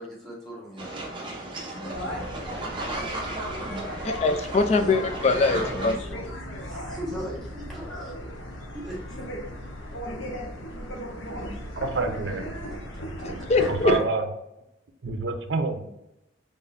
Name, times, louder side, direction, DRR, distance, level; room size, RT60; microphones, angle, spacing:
voice 1, 0.0-2.3 3.5-3.9 4.6-5.0 5.4-8.1 8.7-9.2 13.2-13.5, equal, ahead, -7 dB, 1.4 m, -39 dB
sound 1, 0.8-6.0, right 2 dB, 25° right, 0.7 m, -35 dB
sound 2, 1.9-14.0, equal, 75° left, 0.8 m, -36 dB
voice 2, 4.0-5.9 13.5-13.9, left 3 dB, 35° left, 8 dB, 0.3 m, -22 dB
voice 3, 11.8-12.4 13.8-14.2 15.0-15.8, right 3 dB, 65° right, 6 dB, 0.5 m, -27 dB
4.1 x 3.5 x 2.6 m, 0.87 s
head